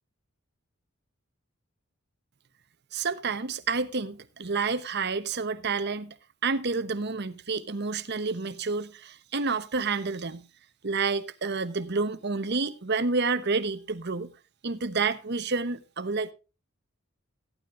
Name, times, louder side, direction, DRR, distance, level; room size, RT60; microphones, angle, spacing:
voice 1, 2.9-6.1 6.4-10.4 10.8-14.3 14.6-16.3, right 4 dB, 50° right, 1.0 m, -29 dB
16.5 x 12.0 x 2.5 m
head